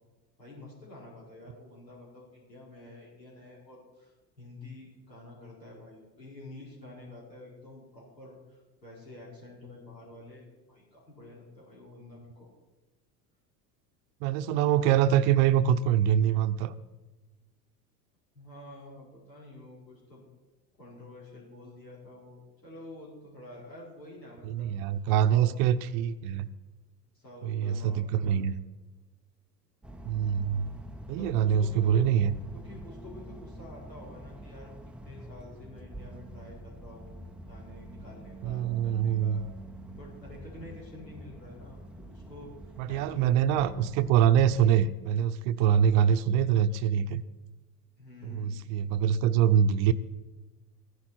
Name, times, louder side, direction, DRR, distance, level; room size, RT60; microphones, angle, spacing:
voice 1, 0.4-12.5 18.3-20.2 20.8-24.7 25.3-25.6 27.1-28.4 29.9-30.5 31.1-32.0 32.5-34.7 35.0-39.4 39.9-43.5 44.3-44.5 48.0-48.7, left 2 dB, 85° left, -6 dB, 5.0 m, -48 dB
voice 2, 14.2-16.8 24.4-26.5 27.4-28.5 30.0-30.7 31.1-32.3 38.4-39.4 42.8-47.2 48.2-49.9, right 9 dB, 55° right, 12 dB, 0.7 m, -24 dB
sound 1, 29.8-44.9, right 1 dB, ahead, 0.5 m, -46 dB
14.5 x 11.5 x 4.4 m, 1.2 s
figure-of-eight pair, 70°, 49 cm